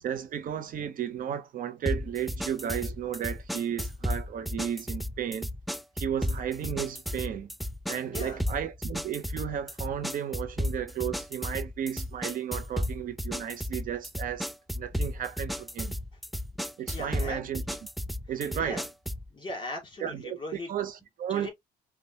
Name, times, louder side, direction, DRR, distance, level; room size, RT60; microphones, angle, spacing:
voice 1, 0.0-5.5 6.0-7.5 7.9-14.5 14.8-16.0 16.8-17.6 18.3-18.8 20.0-20.4 20.7-21.5, right 9 dB, 55° right, 0.8 m, -34 dB
sound 1, 1.9-19.3, equal, ahead, 0.3 m, -34 dB
voice 2, 8.0-8.4 16.9-17.4 18.5-18.8 19.3-20.7 21.3-21.5, left 1 dB, 30° left, 2.4 m, -38 dB
5.4 x 2.4 x 2.8 m
cardioid pair, 110°, 17 cm